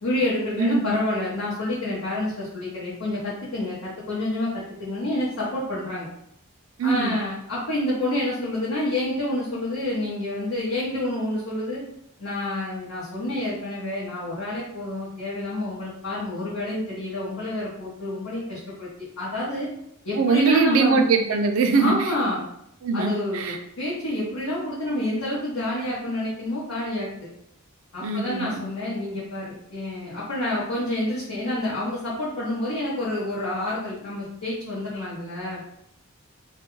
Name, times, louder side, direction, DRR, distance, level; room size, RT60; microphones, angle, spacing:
voice 1, 0.0-6.1 6.8-11.8 12.2-19.7 20.0-21.0 21.7-22.4 22.9-27.3 27.9-35.6, left 1 dB, 85° left, -8 dB, 0.8 m, -28 dB
voice 2, 0.6-1.0 6.8-7.2 20.2-22.1 22.8-23.6 28.0-28.6, right 4 dB, 70° right, 6 dB, 0.4 m, -22 dB
2.3 x 2.1 x 3.0 m, 0.75 s
head